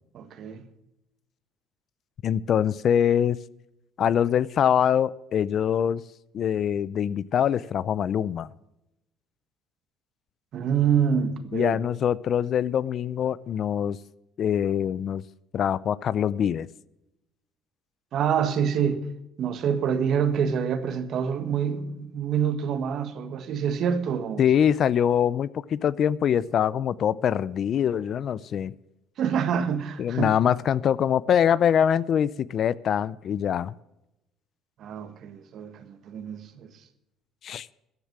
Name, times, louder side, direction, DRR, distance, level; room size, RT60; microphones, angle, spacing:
voice 1, 0.1-0.6 10.5-11.8 18.1-19.1 19.4-24.4 29.2-30.4 34.8-36.7, right 7 dB, 50° right, 1.5 m, -26 dB
voice 2, 2.2-3.4 4.0-6.0 6.3-8.5 11.5-14.0 14.4-15.2 15.5-16.7 24.4-28.7 30.0-33.7 37.4-37.7, left 9 dB, 45° left, 0.4 m, -24 dB
14.0 x 10.0 x 6.0 m
cardioid pair, 145°, 0 cm